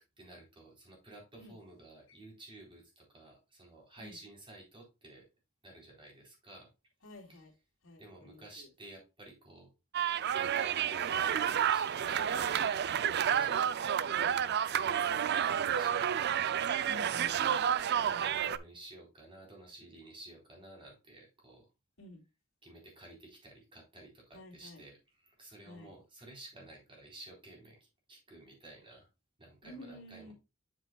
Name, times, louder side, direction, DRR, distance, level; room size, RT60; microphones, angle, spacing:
voice 1, 0.0-5.3 5.6-6.7 8.0-9.7 10.3-16.4 17.3-17.5 18.0-21.7 22.6-25.0 25.2-29.1 29.4-30.3, right 2 dB, 25° right, 3.9 m, -53 dB
voice 2, 7.0-7.5 7.8-8.7 16.8-17.6 22.0-22.2 24.3-24.9 25.6-25.9 29.6-30.3, left 1 dB, 75° left, 3.0 m, -51 dB
sound 1, 9.9-18.6, right 9 dB, 55° right, 0.4 m, -30 dB
8.2 x 7.4 x 2.3 m
head